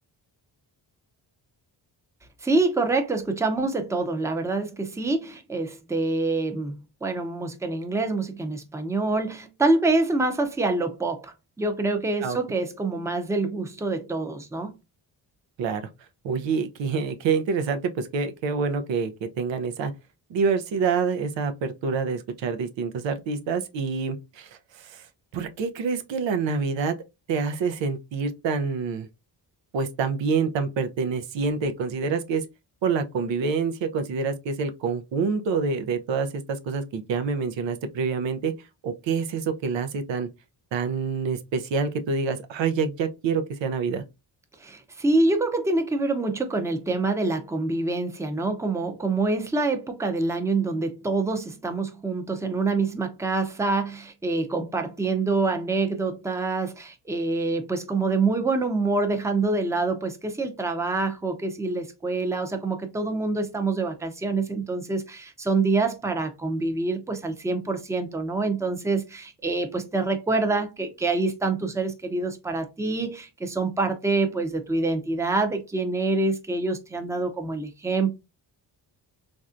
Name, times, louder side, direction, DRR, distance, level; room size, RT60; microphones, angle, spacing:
voice 1, 2.4-14.7 44.6-78.2, right 3 dB, 5° right, 0.5 m, -26 dB
voice 2, 16.2-19.9 20.3-25.1 25.3-26.9 27.3-29.1 29.7-32.5 32.8-38.5 38.8-40.3 40.7-44.0, right 5 dB, 85° right, 0.6 m, -27 dB
3.3 x 2.6 x 2.4 m
cardioid pair, 90°, 44 cm